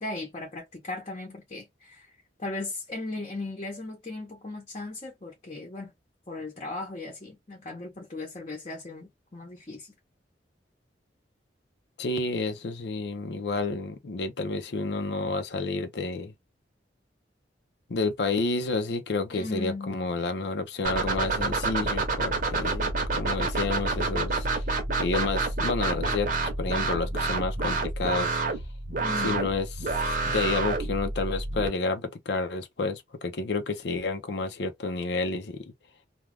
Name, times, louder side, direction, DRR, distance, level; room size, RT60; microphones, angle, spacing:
voice 1, 0.0-2.1 2.4-5.9 6.3-9.9 19.3-20.1 29.0-29.5, left 2 dB, 35° left, 0.8 m, -37 dB
voice 2, 12.0-16.3 17.9-24.6 25.0-26.3 26.6-28.4 29.2-29.7 30.2-35.6, left 3 dB, 70° left, 0.5 m, -30 dB
sound 1, 20.8-31.7, right 3 dB, 50° right, 0.8 m, -28 dB
2.4 x 2.2 x 3.2 m
head